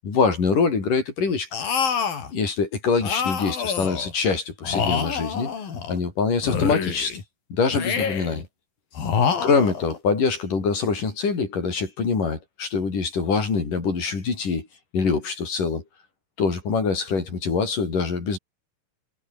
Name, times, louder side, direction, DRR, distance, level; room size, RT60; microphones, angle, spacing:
voice 1, 0.0-1.5 2.3-5.5 5.9-7.2 7.5-8.5 9.4-14.7 14.9-15.8 16.4-18.4, left 5 dB, 65° left, 7.1 m, -24 dB
sound 1, 1.5-2.3 3.0-4.1 4.6-6.0 6.4-7.2 7.7-8.4 9.0-10.0, left 6 dB, 80° left, 5.6 m, -26 dB
omnidirectional pair, 4.0 m